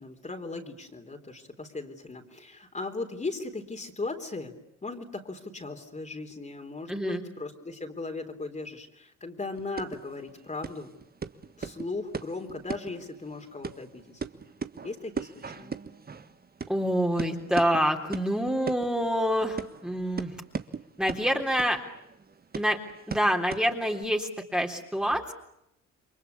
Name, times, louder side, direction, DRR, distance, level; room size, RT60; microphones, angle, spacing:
voice 1, 0.0-4.5 4.8-10.9 11.6-14.2 14.8-15.8, left 3 dB, 25° left, 4 dB, 3.9 m, -37 dB
voice 2, 6.9-7.2 16.7-20.4 21.0-21.8 22.6-22.8 23.1-25.3, equal, 5° right, 1 dB, 3.7 m, -27 dB
sound 1, 9.6-24.0, right 5 dB, 30° right, 1.5 m, -40 dB
30.0 x 23.5 x 8.5 m, 0.81 s
cardioid pair, 90°, 30 cm